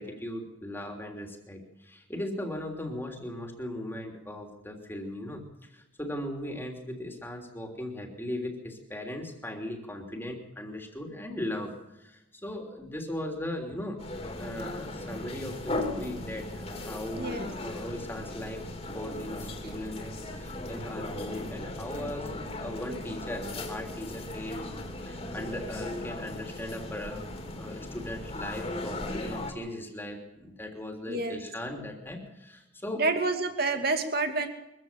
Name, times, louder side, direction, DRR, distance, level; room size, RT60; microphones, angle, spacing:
voice 1, 0.0-5.4 5.7-14.0 14.4-18.7 18.9-22.3 22.6-24.7 25.0-27.3 27.5-33.0, left 1 dB, 10° left, 3 dB, 3.2 m, -38 dB
sound 1, 14.0-29.5, left 1 dB, 30° left, 3.2 m, -37 dB
voice 2, 17.2-17.5 31.1-31.4 33.0-34.5, right 3 dB, 50° right, 6 dB, 2.5 m, -28 dB
23.5 x 15.0 x 7.5 m, 0.96 s
head